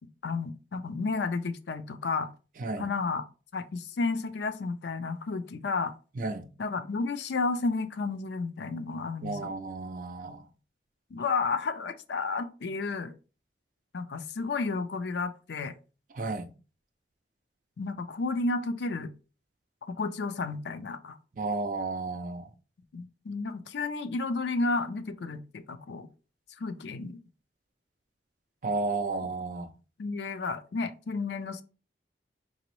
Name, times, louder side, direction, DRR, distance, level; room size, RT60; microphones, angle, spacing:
voice 1, 0.2-2.3 2.8-3.2 3.5-5.9 6.6-9.5 11.1-13.1 13.9-15.7 17.8-19.1 19.9-21.2 22.9-26.1 26.6-27.2 30.0-31.6, left 3 dB, 70° left, 0.4 m, -32 dB
voice 2, 6.2-6.5 9.2-10.4 16.1-16.5 21.4-22.5 28.6-29.7, right 3 dB, 45° right, 0.4 m, -32 dB
4.0 x 3.0 x 3.0 m
head